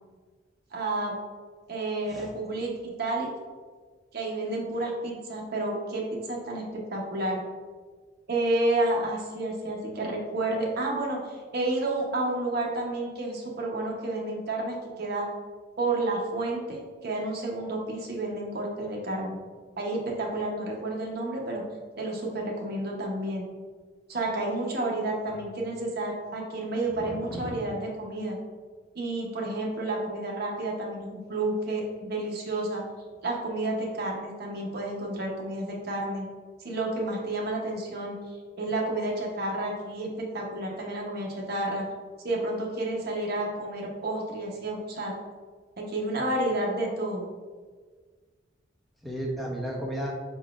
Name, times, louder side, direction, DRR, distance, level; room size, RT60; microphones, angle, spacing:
voice 1, 0.7-1.2 1.7-3.3 4.1-6.6 6.9-7.4 8.3-15.3 15.8-19.4 19.8-21.6 22.0-23.5 24.1-28.4 28.9-32.8 33.2-36.3 36.6-38.2 38.5-41.8 42.2-45.1 45.8-47.3, right 2 dB, 60° right, -2 dB, 0.8 m, -30 dB
voice 2, 26.9-27.5 49.0-50.1, right 1 dB, ahead, -3 dB, 0.7 m, -34 dB
4.8 x 3.9 x 2.4 m, 1.5 s
head